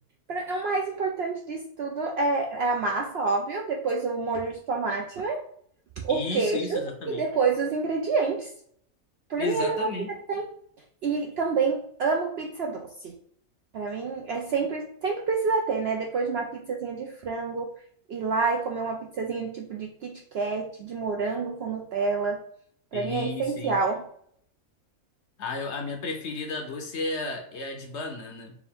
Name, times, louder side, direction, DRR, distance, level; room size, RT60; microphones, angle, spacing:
voice 1, 0.3-5.4 6.0-8.5 9.3-10.5 11.0-13.1 13.7-17.7 18.1-22.4 22.9-24.0, right 4 dB, 65° right, 1 dB, 0.6 m, -28 dB
voice 2, 6.1-7.2 9.4-10.1 22.9-23.8 25.4-28.6, left 2 dB, 60° left, 3 dB, 0.9 m, -33 dB
4.8 x 2.6 x 3.5 m, 0.63 s
omnidirectional pair, 1.5 m